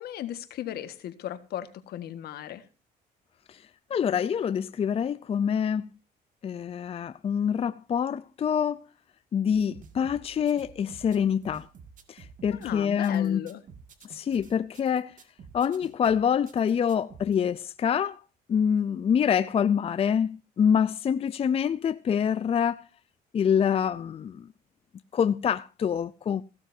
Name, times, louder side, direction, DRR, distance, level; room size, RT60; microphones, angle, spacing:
voice 1, 0.0-2.6 12.5-13.6, left 11 dB, 70° left, 1.7 m, -36 dB
voice 2, 3.9-5.9 6.4-8.8 9.3-11.7 12.1-13.4 14.1-15.1 15.5-18.2 18.5-22.8 23.3-24.4 25.1-26.4, left 7 dB, 35° left, 0.5 m, -26 dB
sound 1, 9.5-17.3, right 6 dB, 50° right, 2.1 m, -50 dB
16.5 x 12.5 x 2.7 m
cardioid pair, 110°, 17 cm